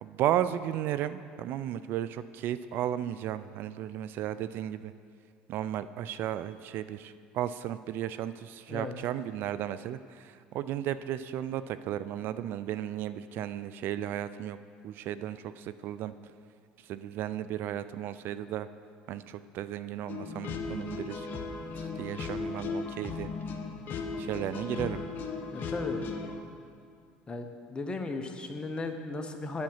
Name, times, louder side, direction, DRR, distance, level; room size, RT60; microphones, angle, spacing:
voice 1, 0.0-4.9 5.5-14.6 14.8-16.1 16.9-18.7 19.1-21.3 22.0-23.3 24.2-25.0, right 11 dB, 60° right, 14 dB, 0.3 m, -34 dB
sound 1, 20.1-26.3, left 4 dB, 50° left, 0.9 m, -36 dB
voice 2, 25.5-26.0 27.3-29.6, left 3 dB, 25° left, 5 dB, 1.0 m, -36 dB
8.6 x 7.6 x 5.6 m, 2.3 s
supercardioid pair, 85°, 4 cm